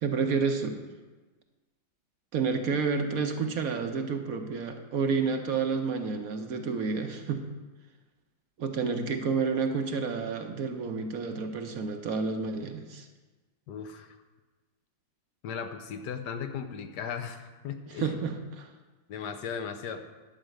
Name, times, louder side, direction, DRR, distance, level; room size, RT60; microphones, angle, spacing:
voice 1, 0.0-0.8 2.3-7.5 8.6-13.1 18.0-18.7, right 5 dB, 60° right, 5 dB, 1.1 m, -30 dB
voice 2, 13.7-14.2 15.4-18.2 19.1-20.0, left 7 dB, 70° left, 8 dB, 1.3 m, -37 dB
11.5 x 5.2 x 7.7 m, 1.3 s
omnidirectional pair, 2.0 m